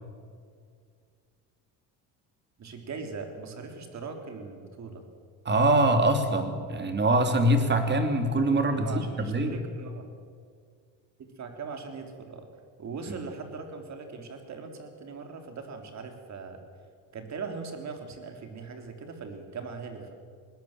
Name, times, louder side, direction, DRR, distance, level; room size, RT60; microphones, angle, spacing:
voice 1, 2.6-5.0 8.7-10.1 11.2-12.5 12.8-16.6 17.1-20.1, right 4 dB, 45° right, 5 dB, 3.7 m, -40 dB
voice 2, 5.4-9.6 13.1-13.2, right 1 dB, 25° right, 7 dB, 2.8 m, -24 dB
21.0 x 19.0 x 7.6 m, 2.1 s
cardioid pair, 125°, 39 cm